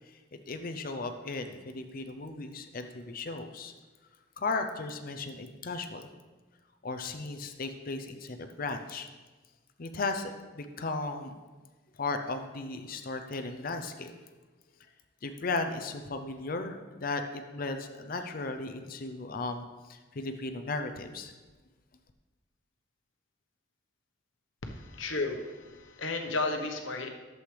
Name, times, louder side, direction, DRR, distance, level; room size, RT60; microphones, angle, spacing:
voice 1, 0.5-3.7 4.4-6.1 6.8-9.1 9.8-11.3 12.0-14.1 15.2-21.3, left 3 dB, 45° left, 7 dB, 0.6 m, -36 dB
voice 2, 24.6-27.1, left 3 dB, 75° left, 4 dB, 1.0 m, -33 dB
11.5 x 7.7 x 3.3 m, 1.3 s
head